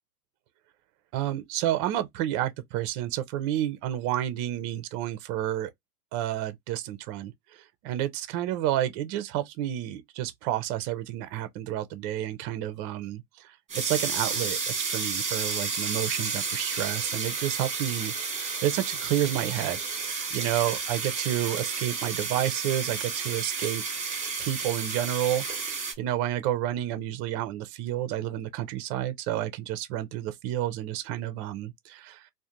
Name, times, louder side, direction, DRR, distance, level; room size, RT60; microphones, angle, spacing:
voice 1, 1.1-5.7 6.1-23.8 24.4-25.4 26.0-32.2, right 12 dB, 35° right, 0.4 m, -30 dB
sound 1, 13.7-25.9, right 5 dB, 15° right, 0.9 m, -31 dB
2.4 x 2.1 x 2.8 m
hypercardioid pair, 105°, 49 cm